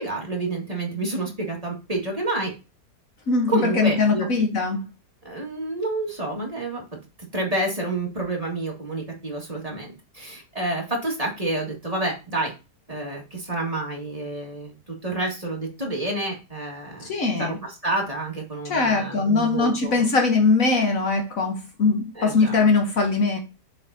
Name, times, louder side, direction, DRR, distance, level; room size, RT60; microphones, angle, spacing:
voice 1, 0.0-2.5 3.5-4.3 5.2-7.0 7.3-12.5 12.9-17.1 17.4-20.1 22.1-22.6, right 2 dB, 20° right, 1.8 m, -29 dB
voice 2, 3.3-4.9 17.0-17.6 18.7-23.4, left 4 dB, 60° left, 1.3 m, -21 dB
7.0 x 5.0 x 2.7 m
omnidirectional pair, 1.8 m